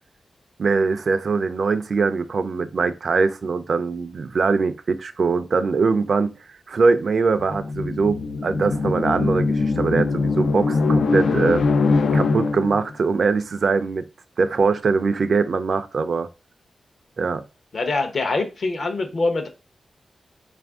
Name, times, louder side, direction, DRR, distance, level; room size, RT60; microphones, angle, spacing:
voice 1, 0.6-6.3 6.7-11.6 12.1-14.0 14.4-16.3 17.2-17.4, right 4 dB, 50° right, 0.3 m, -22 dB
sound 1, 7.4-12.9, left 3 dB, 85° left, 0.4 m, -22 dB
voice 2, 17.7-19.5, left 3 dB, 50° left, 0.7 m, -24 dB
4.2 x 2.5 x 3.4 m
wide cardioid pair, 170°, 0 cm